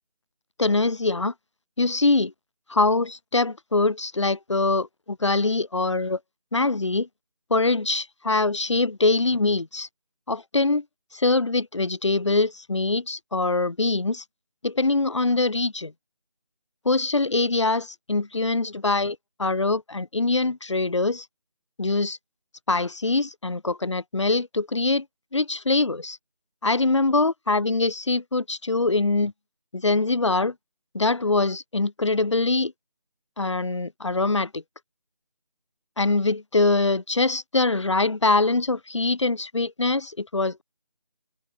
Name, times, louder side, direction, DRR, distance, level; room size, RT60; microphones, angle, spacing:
voice 1, 0.6-1.3 1.8-2.3 2.7-6.2 6.5-7.1 7.5-9.9 10.3-10.8 11.1-14.2 14.6-15.9 16.9-21.3 21.8-22.2 22.7-25.1 25.3-26.2 26.6-29.3 29.7-30.5 30.9-32.7 33.4-34.6 36.0-40.6, left 3 dB, 45° left, 1.9 m, -23 dB
figure-of-eight pair, 175°, 21 cm